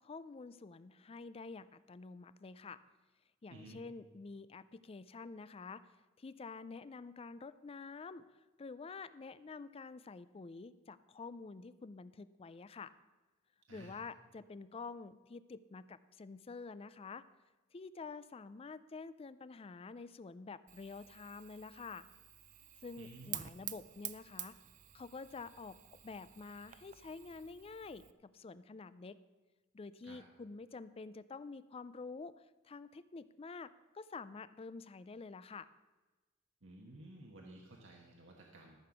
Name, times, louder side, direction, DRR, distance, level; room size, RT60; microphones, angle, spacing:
voice 1, 0.0-2.8 3.4-5.9 6.2-8.2 8.6-12.9 13.7-17.2 17.7-22.1 22.8-24.6 24.9-25.8 26.0-29.2 29.7-35.7, left 4 dB, 30° left, 15 dB, 0.4 m, -48 dB
voice 2, 3.5-3.8 13.7-14.0 23.0-23.4 30.0-30.2 36.6-38.8, right 1 dB, 75° right, 0 dB, 1.3 m, -54 dB
Fire, 20.7-28.1, right 13 dB, 40° right, 0.5 m, -50 dB
13.5 x 6.9 x 6.0 m, 1.2 s
head